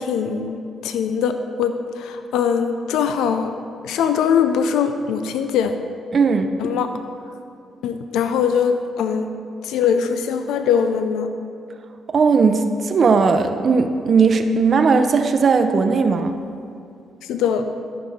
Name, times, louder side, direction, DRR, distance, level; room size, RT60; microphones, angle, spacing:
voice 1, 0.0-3.5 3.8-5.7 6.6-6.9 7.8-9.3 9.6-11.3 17.3-17.7, left 7 dB, 85° left, 8 dB, 0.4 m, -21 dB
voice 2, 6.1-6.5 12.1-16.3, right 5 dB, 50° right, 7 dB, 0.6 m, -17 dB
14.0 x 6.0 x 4.8 m, 2.5 s
cardioid pair, 70°, 0 cm